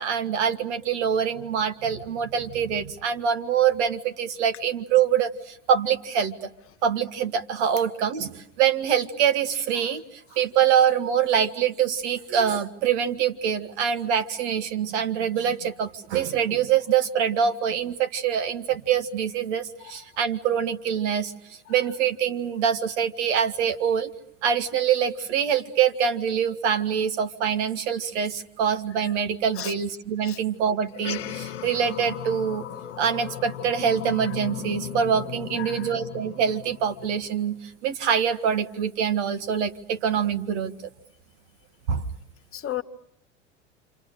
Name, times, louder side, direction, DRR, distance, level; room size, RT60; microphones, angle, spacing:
voice 1, 0.0-6.5 6.8-24.1 24.4-32.7 33.0-40.7 41.9-42.1, right 8 dB, 65° right, 1.8 m, -25 dB
voice 2, 29.6-29.7 30.2-30.4 35.6-35.8 42.5-42.8, left 12 dB, 35° left, 1.4 m, -32 dB
sound 1, 30.9-37.6, left 11 dB, 70° left, 1.3 m, -37 dB
29.0 x 27.0 x 6.7 m
hypercardioid pair, 80°, 37 cm